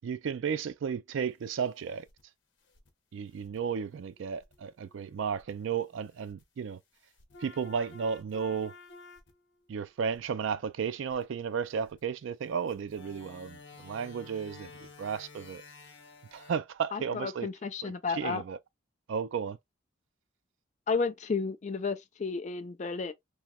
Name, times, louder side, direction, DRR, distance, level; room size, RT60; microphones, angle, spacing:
voice 1, 0.0-2.1 3.1-6.8 7.4-8.7 9.7-15.6 16.3-17.5 17.8-18.6 19.1-19.6, right 6 dB, 70° right, 0.3 m, -34 dB
sound 1, 2.1-2.2 2.7-2.9 3.3-5.5 6.2-6.4 7.1-9.6 10.1-10.3 11.1-11.2 11.9-12.0 12.7-16.5, left 3 dB, 60° left, 0.9 m, -52 dB
voice 2, 16.9-18.4 20.9-23.1, left 4 dB, 35° left, 0.3 m, -32 dB
3.1 x 2.8 x 2.2 m
head